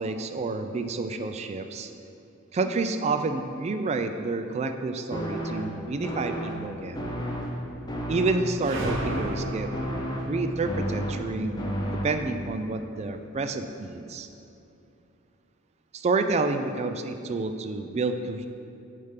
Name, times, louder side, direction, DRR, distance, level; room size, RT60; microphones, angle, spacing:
voice 1, 0.0-1.9 2.5-7.1 8.1-9.7 10.3-11.8 12.0-14.3 15.9-18.5, right 3 dB, 30° right, 8 dB, 0.3 m, -29 dB
sound 1, 5.1-12.5, equal, 20° left, 0.6 m, -33 dB
sound 2, 8.6-13.1, right 2 dB, 65° right, 0.6 m, -36 dB
6.4 x 3.5 x 5.7 m, 2.7 s
head